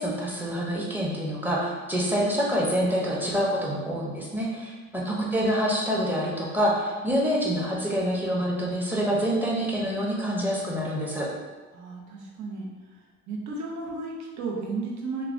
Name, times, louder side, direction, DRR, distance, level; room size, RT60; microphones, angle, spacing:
voice 1, 0.0-11.3, equal, 5° right, -4 dB, 0.6 m, -26 dB
voice 2, 4.9-5.7 11.7-12.7 13.3-15.2, right 3 dB, 70° right, -2 dB, 0.7 m, -34 dB
3.0 x 2.2 x 2.5 m, 1.3 s
cardioid pair, 90°, 30 cm